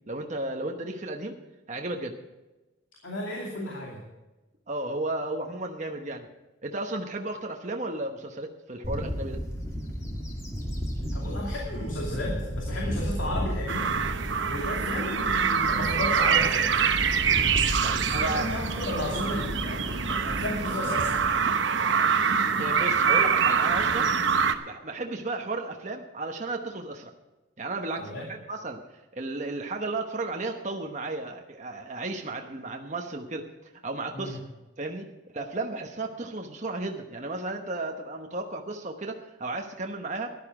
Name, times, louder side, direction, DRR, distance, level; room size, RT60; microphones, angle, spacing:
voice 1, 0.1-1.4 1.7-2.1 4.7-6.3 6.6-9.4 17.8-18.6 22.6-24.1 24.6-27.1 27.6-28.8 29.1-33.5 33.8-34.4 34.8-35.1 35.3-40.3, right 2 dB, 40° right, 3 dB, 1.0 m, -34 dB
voice 2, 3.0-4.0 11.1-13.9 14.5-16.9 18.1-21.2 28.0-28.3 34.1-34.4, left 1 dB, 75° left, -2 dB, 2.6 m, -34 dB
Bird / Wind, 8.8-21.6, equal, 15° left, 2.1 m, -34 dB
sound 1, 13.7-24.5, right 6 dB, 70° right, 0.9 m, -25 dB
13.5 x 11.5 x 4.9 m, 1.1 s
head